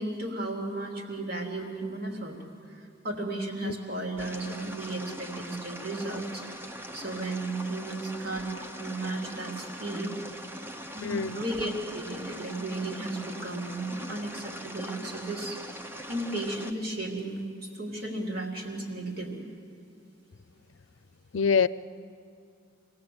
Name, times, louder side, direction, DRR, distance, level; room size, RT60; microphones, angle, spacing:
voice 1, 0.0-2.4 2.7-6.4 6.9-8.5 8.8-10.1 10.9-15.6 16.1-19.4, right 2 dB, 55° right, 0 dB, 3.1 m, -34 dB
sound 1, 4.2-16.7, equal, 10° right, 0.9 m, -42 dB
voice 2, 11.0-11.4 21.3-21.7, left 6 dB, 85° left, 17 dB, 0.5 m, -25 dB
25.0 x 17.5 x 7.9 m, 2.3 s
head